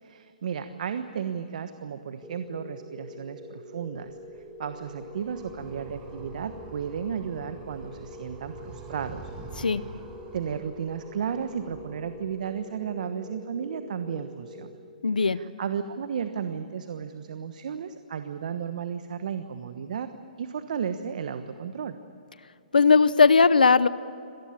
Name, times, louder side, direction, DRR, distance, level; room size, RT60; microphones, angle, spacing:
voice 1, 0.0-9.2 9.6-10.0 10.3-14.7 15.2-20.1 20.4-21.9, right 7 dB, 65° right, 9 dB, 1.2 m, -34 dB
sound 1, 2.2-15.4, equal, ahead, 2.4 m, -45 dB
Animal, 4.0-12.5, right 3 dB, 20° right, 5.4 m, -47 dB
voice 2, 15.0-15.4 22.7-23.9, left 4 dB, 90° left, 16 dB, 0.8 m, -18 dB
26.5 x 18.5 x 8.7 m, 2.6 s
hypercardioid pair, 135°, 5 cm